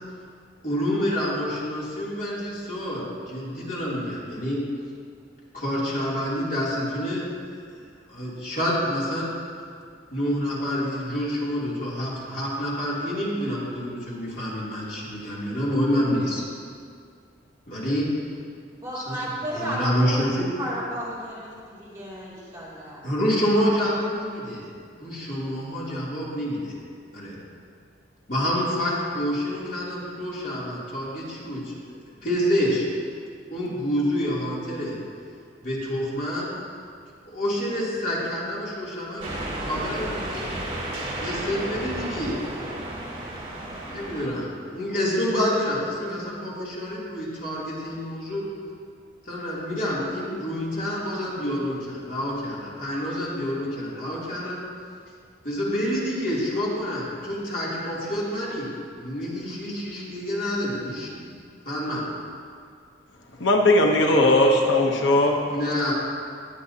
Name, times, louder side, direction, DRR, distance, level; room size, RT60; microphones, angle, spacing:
voice 1, 0.6-4.6 5.5-7.3 7.7-7.8 8.1-9.3 10.1-16.4 17.7-18.1 18.9-19.2 19.5-20.5 23.0-24.7 25.0-26.8 27.1-27.3 28.3-31.7 32.2-32.8 33.5-35.0 35.6-36.5 37.2-40.5 40.9-42.4 43.9-48.4 49.2-54.6 55.4-58.7 59.0-61.3 61.6-62.0 65.5-65.9, equal, 45° left, -7 dB, 3.1 m, -27 dB
voice 2, 18.8-20.2 20.6-23.0 64.5-64.6, right 1 dB, 15° right, -9 dB, 2.8 m, -33 dB
sound 1, 39.2-44.3, right 1 dB, 35° right, 2.5 m, -32 dB
voice 3, 63.4-65.4, left 1 dB, 85° left, 1 dB, 1.0 m, -18 dB
20.5 x 8.3 x 2.9 m, 2.2 s
head